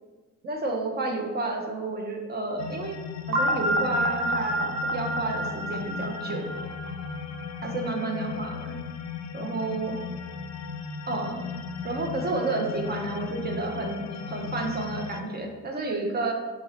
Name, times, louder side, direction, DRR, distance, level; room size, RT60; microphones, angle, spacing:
voice 1, 0.4-3.0 3.3-6.5 7.6-8.8 9.3-10.0 11.1-11.4 11.8-16.3, right 2 dB, 35° right, 2 dB, 0.6 m, -31 dB
sound 1, 2.6-15.2, left 6 dB, 65° left, 0.4 m, -36 dB
sound 2, 3.3-7.3, right 1 dB, 85° right, 0.6 m, -28 dB
2.8 x 2.7 x 4.2 m, 1.3 s
cardioid pair, 90°, 30 cm